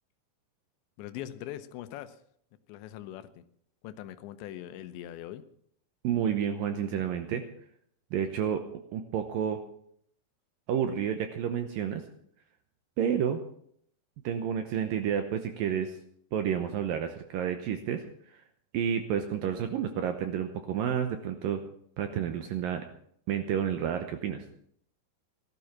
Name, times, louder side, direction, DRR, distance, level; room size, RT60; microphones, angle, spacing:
voice 1, 1.0-2.2 2.7-3.5 3.8-5.4, left 12 dB, 85° left, 11 dB, 3.2 m, -41 dB
voice 2, 6.0-7.4 8.1-8.6 8.9-9.6 10.7-12.0 13.0-13.4 14.2-16.0 16.3-18.1 18.7-21.6 22.0-22.8 23.3-24.4, right 8 dB, 75° right, 7 dB, 2.2 m, -30 dB
16.5 x 12.5 x 5.9 m, 0.66 s
omnidirectional pair, 5.1 m